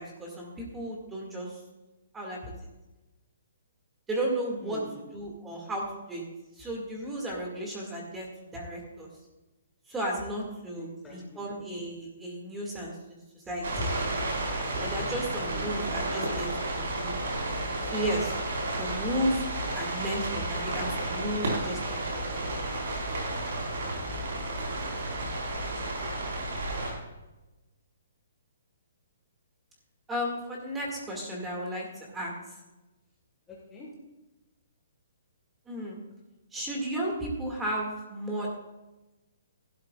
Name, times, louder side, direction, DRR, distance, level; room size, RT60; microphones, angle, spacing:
voice 1, 0.0-1.5 2.1-2.5 4.1-4.8 5.1-6.2 6.6-8.3 8.5-9.1 9.9-12.9 13.5-13.9 14.8-16.5 16.8-17.3 17.9-18.3 18.8-19.5 19.8-22.0 22.3-22.7 30.1-31.9 32.1-32.3 35.7-36.0 36.5-38.5, right 1 dB, 10° right, -1 dB, 2.2 m, -33 dB
voice 2, 4.6-5.0 10.8-11.5 15.4-15.8 33.5-33.9, left 2 dB, 10° left, -4 dB, 1.7 m, -47 dB
sound 1, 13.6-26.9, right 2 dB, 65° right, 4.7 m, -32 dB
15.5 x 12.5 x 2.5 m, 1.1 s
hypercardioid pair, 170°, 0 cm